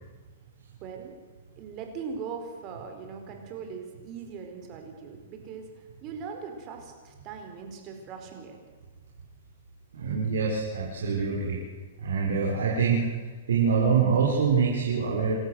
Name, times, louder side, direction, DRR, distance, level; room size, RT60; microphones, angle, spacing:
voice 1, 0.8-1.2 1.6-8.6, right 6 dB, 35° right, 4 dB, 4.6 m, -40 dB
voice 2, 9.9-11.6 12.0-13.1 13.5-15.3, right 5 dB, 90° right, -3 dB, 5.0 m, -25 dB
28.5 x 13.5 x 8.0 m, 1.4 s
hypercardioid pair, 145°, 0 cm